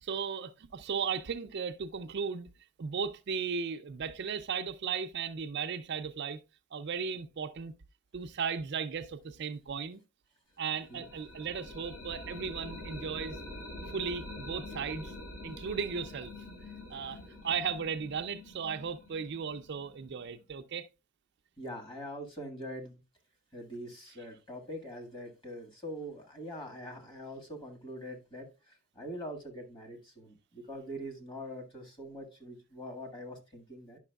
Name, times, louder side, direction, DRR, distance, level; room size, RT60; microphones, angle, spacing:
voice 1, 0.0-2.5 2.8-6.4 6.7-7.7 8.1-10.0 10.6-13.4 13.9-15.1 15.4-16.3 16.9-20.9, right 6 dB, 50° right, 0.4 m, -36 dB
sound 1, 10.6-20.4, left 1 dB, 70° left, 4.8 m, -46 dB
voice 2, 21.6-23.0 23.5-34.0, equal, 20° left, 1.7 m, -43 dB
9.9 x 5.9 x 2.3 m
head